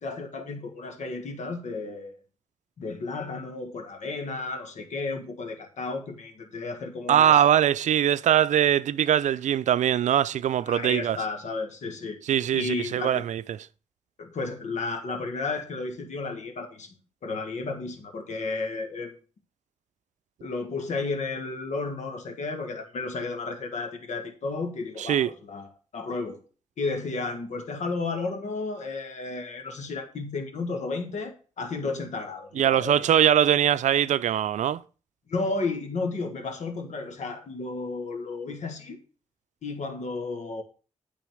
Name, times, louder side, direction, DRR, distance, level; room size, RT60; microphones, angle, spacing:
voice 1, 0.0-2.1 2.8-7.4 10.7-12.2 12.5-13.2 14.2-16.9 17.2-19.1 20.4-26.4 26.8-33.1 35.3-39.0 39.6-40.6, left 3 dB, 75° left, 1.7 m, -33 dB
voice 2, 7.1-11.2 12.3-13.6 25.0-25.3 32.6-34.8, right 10 dB, 80° right, 0.4 m, -22 dB
9.2 x 4.2 x 6.3 m
cardioid pair, 65°, 12 cm